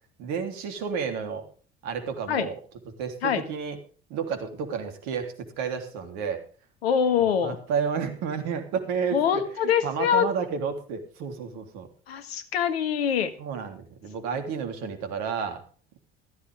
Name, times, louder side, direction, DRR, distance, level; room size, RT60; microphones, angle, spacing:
voice 1, 0.2-1.5 1.8-2.6 3.0-3.8 4.1-6.4 7.4-11.9 13.4-15.6, right 6 dB, 65° right, 6 dB, 3.4 m, -31 dB
voice 2, 6.8-7.6 9.1-10.3 12.1-13.3, left 8 dB, 80° left, 11 dB, 1.8 m, -24 dB
15.5 x 14.5 x 3.6 m, 0.39 s
figure-of-eight pair, 55°, 31 cm